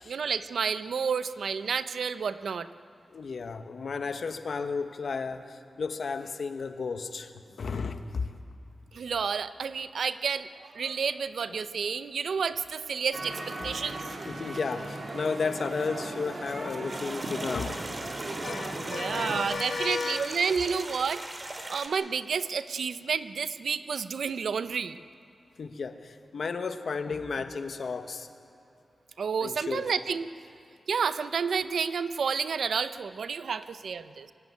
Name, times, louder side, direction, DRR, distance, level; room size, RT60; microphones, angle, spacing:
voice 1, 0.1-2.7 8.9-14.1 18.8-21.2 21.7-25.0 29.2-30.3 30.9-34.3, right 6 dB, 90° right, 12 dB, 0.7 m, -30 dB
voice 2, 3.1-8.3 11.5-11.6 13.6-13.8 14.3-17.9 18.4-20.5 25.6-28.3 29.4-29.9, left 4 dB, 70° left, 8 dB, 1.2 m, -33 dB
sound 1, 13.1-19.4, right 2 dB, 55° right, 2.8 m, -37 dB
sound 2, 16.9-21.9, right 2 dB, 30° right, 2.5 m, -40 dB
23.5 x 15.5 x 9.7 m, 2.6 s
wide cardioid pair, 120°, 0 cm